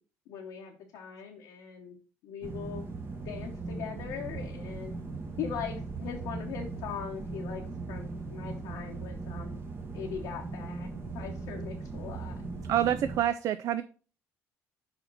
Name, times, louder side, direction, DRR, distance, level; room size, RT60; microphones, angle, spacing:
voice 1, 0.3-2.0 2.2-2.8 3.2-4.9 5.4-9.6 9.9-10.9 11.1-13.0, left 8 dB, 80° left, 0 dB, 1.0 m, -41 dB
sound 1, 2.4-13.2, right 3 dB, 40° right, 1.4 m, -38 dB
voice 2, 12.7-13.8, right 11 dB, 60° right, 12 dB, 0.4 m, -27 dB
5.6 x 5.2 x 4.0 m, 0.39 s
supercardioid pair, 70°, 6 cm